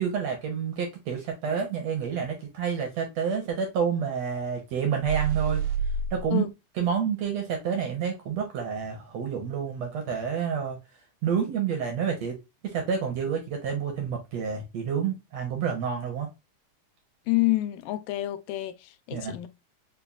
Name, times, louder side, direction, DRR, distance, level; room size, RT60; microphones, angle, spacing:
voice 1, 0.0-5.6 6.1-6.5 6.8-10.8 11.2-12.4 12.6-16.3 19.1-19.3, right 7 dB, 70° right, 1.6 m, -29 dB
sound 1, 5.0-6.2, right 6 dB, 85° right, 2.5 m, -28 dB
voice 2, 17.3-19.5, left 18 dB, 85° left, 2.1 m, -28 dB
5.5 x 2.2 x 2.3 m
omnidirectional pair, 3.7 m